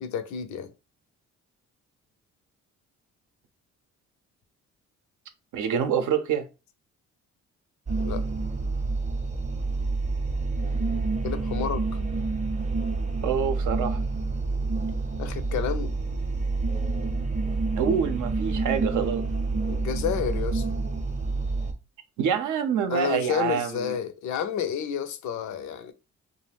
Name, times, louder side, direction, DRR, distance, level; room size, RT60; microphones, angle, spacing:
voice 1, 0.0-0.7 8.0-8.2 11.2-12.0 15.2-15.9 19.7-20.7 22.9-25.9, left 8 dB, 70° left, 0.5 m, -30 dB
voice 2, 5.5-6.5 13.2-14.0 17.8-19.2 22.2-23.9, right 7 dB, 75° right, 0.6 m, -26 dB
sound 1, 7.9-21.7, right 3 dB, 25° right, 0.6 m, -28 dB
2.4 x 2.1 x 3.2 m
cardioid pair, 90°, 30 cm